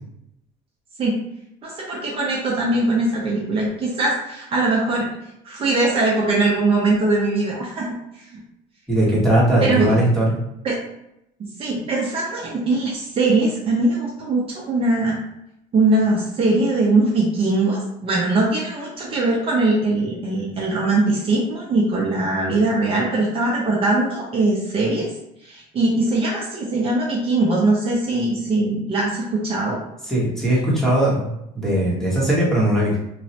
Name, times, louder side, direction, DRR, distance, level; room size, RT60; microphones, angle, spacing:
voice 1, 1.6-5.1 5.4-7.9 9.6-10.0 10.6-10.7 11.6-15.2 15.7-25.0 25.4-29.8, right 2 dB, 35° right, -3 dB, 0.6 m, -21 dB
voice 2, 8.9-10.4 30.0-31.3 31.5-33.0, right 1 dB, 5° left, -6 dB, 0.8 m, -19 dB
3.0 x 2.0 x 2.7 m, 0.81 s
cardioid pair, 145°, 17 cm